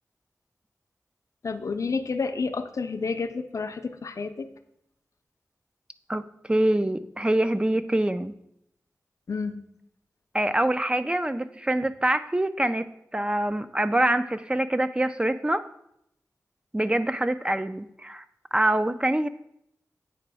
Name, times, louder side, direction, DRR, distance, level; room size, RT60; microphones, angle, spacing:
voice 1, 1.4-4.5 9.3-9.6, left 4 dB, 65° left, 8 dB, 0.5 m, -30 dB
voice 2, 6.5-8.3 10.3-15.6 16.7-18.2 18.5-19.3, right 1 dB, 15° right, 11 dB, 0.4 m, -25 dB
8.5 x 2.9 x 4.7 m, 0.76 s
wide cardioid pair, 60°, 6 cm